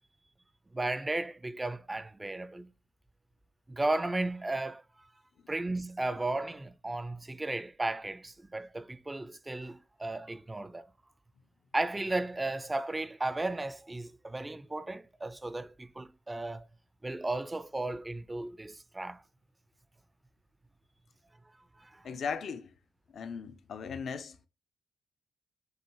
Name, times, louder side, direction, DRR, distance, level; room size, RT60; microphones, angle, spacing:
voice 1, 0.7-2.7 3.7-4.8 5.5-10.9 11.7-16.7 17.0-19.2 21.8-22.0, right 2 dB, 20° right, 0.3 m, -35 dB
voice 2, 22.0-22.7 23.1-24.5, left 6 dB, 60° left, 0.4 m, -38 dB
5.4 x 2.5 x 3.0 m
hypercardioid pair, 40°, 0 cm